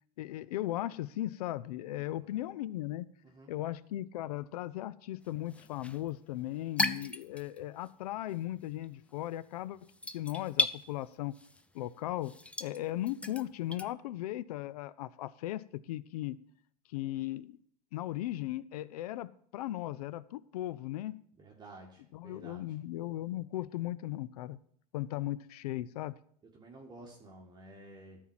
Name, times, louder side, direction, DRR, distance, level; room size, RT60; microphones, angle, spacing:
voice 1, 0.2-3.1 3.5-9.8 10.1-11.3 11.7-12.3 12.6-16.4 16.9-17.6 17.9-21.2 22.1-24.6 24.9-26.2, left 14 dB, 75° left, 0.5 m, -37 dB
voice 2, 2.0-2.4 3.2-3.5 21.4-22.7 26.5-28.2, right 2 dB, 20° right, 1.9 m, -52 dB
sound 1, 5.2-7.9 8.2-13.9, left 2 dB, 5° left, 0.6 m, -36 dB
12.5 x 4.6 x 7.4 m
hypercardioid pair, 90°, 20 cm